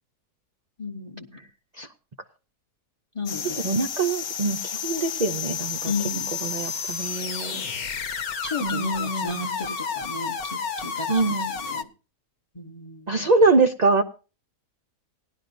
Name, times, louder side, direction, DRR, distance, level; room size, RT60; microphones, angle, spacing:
voice 1, 0.8-1.3 3.1-3.7 5.8-6.4 8.4-11.9 12.5-13.3, left 3 dB, 25° left, 7 dB, 0.7 m, -34 dB
sound 1, 3.3-11.8, left 6 dB, 70° left, 1.3 m, -31 dB
voice 2, 3.6-5.9 6.4-7.6 8.6-9.5 11.1-11.5 13.1-14.0, right 3 dB, 70° right, 4 dB, 0.4 m, -24 dB
18.0 x 11.5 x 2.6 m, 0.33 s
omnidirectional pair, 1.7 m